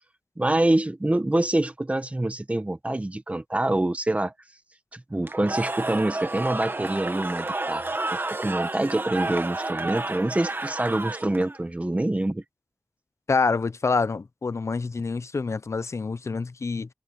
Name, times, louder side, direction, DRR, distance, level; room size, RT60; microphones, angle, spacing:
voice 1, 0.4-4.3 4.9-12.4, right 1 dB, 25° right, 1.4 m, -26 dB
Cheering / Crowd, 5.2-11.6, right 2 dB, 45° right, 1.5 m, -31 dB
voice 2, 13.3-16.9, left 4 dB, 70° left, 0.6 m, -26 dB
wide cardioid pair, 60°, 5 cm